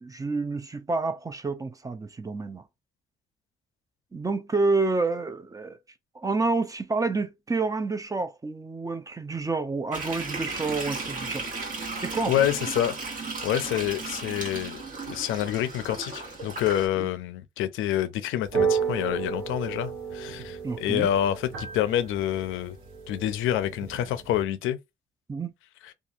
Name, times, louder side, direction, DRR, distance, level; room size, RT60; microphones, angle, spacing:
voice 1, 0.0-2.6 4.1-5.8 6.1-11.5 12.0-12.3 17.0-17.1 20.6-21.1 25.3-25.5, right 3 dB, 15° right, 0.4 m, -28 dB
sound 1, 9.9-16.9, right 3 dB, 45° right, 1.2 m, -35 dB
voice 2, 12.3-14.8 15.1-22.8 23.1-24.8, left 11 dB, 85° left, 0.5 m, -27 dB
sound 2, 18.4-24.4, right 6 dB, 90° right, 0.8 m, -32 dB
2.8 x 2.4 x 2.4 m
cardioid pair, 90°, 20 cm